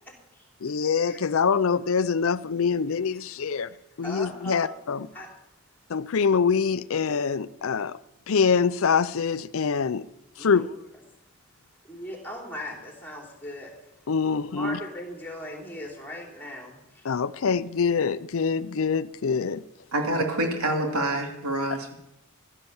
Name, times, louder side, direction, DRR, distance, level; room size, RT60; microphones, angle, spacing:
voice 1, 0.6-3.7 4.0-5.1 5.9-8.0 8.3-10.1 10.4-10.7 14.1-14.8 17.0-19.6, left 5 dB, 65° left, 0.5 m, -25 dB
voice 2, 4.0-4.7 5.1-5.3 10.4-10.7 11.9-13.7 14.6-17.0, equal, 10° left, 3.4 m, -38 dB
voice 3, 19.9-22.0, right 1 dB, 80° right, 3.0 m, -27 dB
16.0 x 12.0 x 7.1 m
head